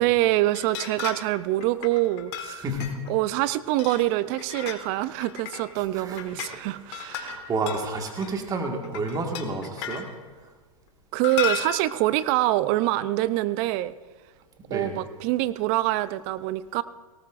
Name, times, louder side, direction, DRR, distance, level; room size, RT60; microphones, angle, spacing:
voice 1, 0.0-2.7 3.1-7.4 11.1-13.9 14.7-16.8, right 16 dB, 40° right, 16 dB, 0.5 m, -25 dB
sound 1, 0.5-1.3 1.6-3.1 3.8-4.9 5.2-5.7 6.0-6.6 6.9-8.3 8.8-10.1 11.2-11.9, left 8 dB, 50° left, 1.5 m, -34 dB
voice 2, 2.6-3.1 5.8-6.2 6.8-10.1 14.6-15.0, right 2 dB, 20° right, 3 dB, 1.8 m, -31 dB
18.5 x 18.5 x 2.5 m, 1.4 s
hypercardioid pair, 125°, 19 cm